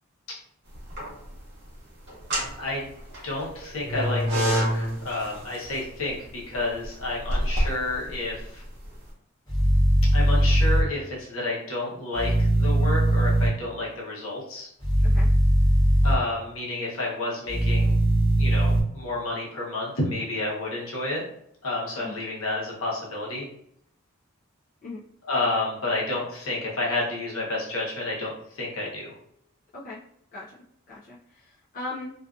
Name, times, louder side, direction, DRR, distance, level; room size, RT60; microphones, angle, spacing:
sound 1, 0.7-1.4 2.1-9.0, equal, 50° right, 0.9 m, -28 dB
voice 1, 3.2-8.6 10.1-14.7 16.0-17.9 18.4-21.2 21.6-23.5 25.2-29.1, left 2 dB, 75° left, -4 dB, 0.9 m, -30 dB
sound 2, 9.5-10.8 12.1-13.5 14.8-16.1 17.5-18.8, right 1 dB, 20° left, 0.8 m, -20 dB
voice 2, 30.9-32.1, left 2 dB, 40° left, -7 dB, 0.4 m, -38 dB
2.5 x 2.5 x 2.3 m, 0.71 s
head